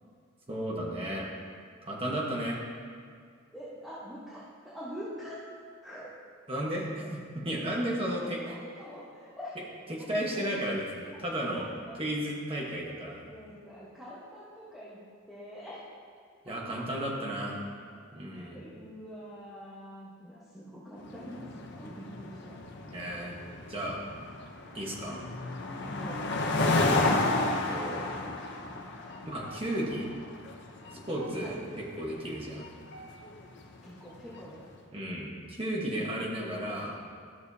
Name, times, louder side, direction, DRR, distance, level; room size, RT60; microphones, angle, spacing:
voice 1, 0.5-1.3 1.8-2.6 6.5-6.8 7.1-8.4 9.9-11.7 11.9-13.2 16.4-17.6 18.1-18.6 22.9-23.3 23.7-24.0 24.7-25.2 27.4-28.1 29.3-30.1 30.9-32.7 34.9-36.9, right 1 dB, 25° right, -3 dB, 1.2 m, -34 dB
voice 2, 3.5-5.4 5.8-6.1 6.5-7.1 8.2-9.7 10.3-10.4 11.5-12.0 13.2-15.0 15.3-15.9 16.5-17.0 18.3-22.6 25.8-26.8 31.4-31.5 33.8-34.6 35.9-36.1, equal, ahead, -10 dB, 1.1 m, -45 dB
sound 1, 21.0-34.5, left 2 dB, 55° left, 0.7 m, -32 dB
12.5 x 6.6 x 2.7 m, 2.1 s
head